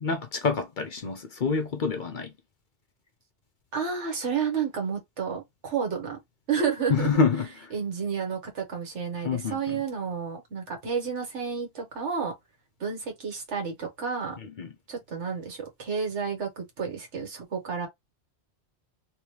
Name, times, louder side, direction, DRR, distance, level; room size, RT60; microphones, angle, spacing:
voice 1, 0.0-2.3 6.9-7.7 9.2-9.8 14.4-14.7, left 5 dB, 55° left, 0.7 m, -27 dB
voice 2, 3.7-6.2 6.5-7.2 7.7-12.3 12.8-14.4 14.9-17.9, right 6 dB, 80° right, 1.5 m, -31 dB
3.0 x 3.0 x 3.1 m
omnidirectional pair, 1.2 m